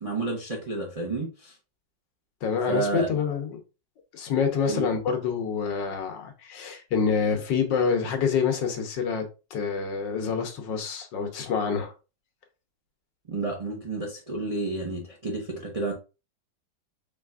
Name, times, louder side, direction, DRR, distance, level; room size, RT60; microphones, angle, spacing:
voice 1, 0.0-1.5 2.7-3.1 4.7-4.9 13.3-15.9, right 3 dB, 30° right, 0.6 m, -30 dB
voice 2, 2.4-3.6 4.1-9.2 9.5-11.9, left 6 dB, 75° left, 1.6 m, -27 dB
5.0 x 3.3 x 2.4 m
omnidirectional pair, 2.0 m